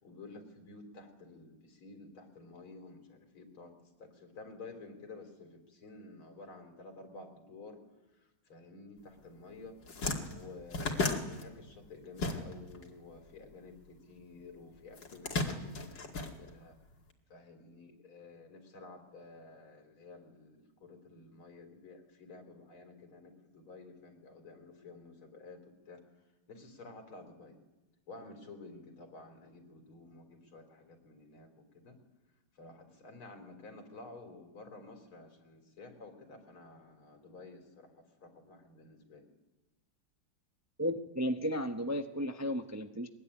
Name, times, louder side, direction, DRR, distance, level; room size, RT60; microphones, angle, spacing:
voice 1, 0.0-7.8 8.5-9.8 10.3-16.7 17.3-26.0 26.5-27.6 28.1-32.0 32.6-39.3, left 3 dB, 85° left, 6 dB, 4.2 m, -52 dB
sound 1, 9.3-9.4 9.7-12.8 13.1-14.3 14.9-17.0, left 3 dB, 60° left, 2.9 m, -35 dB
voice 2, 40.8-43.1, equal, 15° right, 6 dB, 0.6 m, -34 dB
22.5 x 21.0 x 9.9 m, 1.1 s
omnidirectional pair, 2.2 m